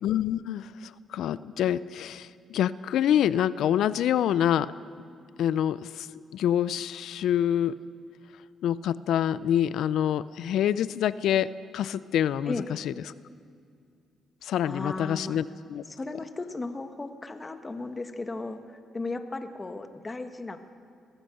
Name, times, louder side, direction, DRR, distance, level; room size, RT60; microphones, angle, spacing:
voice 1, 0.0-4.7 5.4-6.1 6.3-7.8 8.6-12.6 12.8-12.9 14.4-15.4 15.7-15.8, left 10 dB, 75° left, 17 dB, 0.5 m, -26 dB
voice 2, 14.6-15.4 15.9-20.7, left 2 dB, 25° left, 8 dB, 1.5 m, -36 dB
21.5 x 15.5 x 7.9 m, 2.3 s
cardioid pair, 90°, 0 cm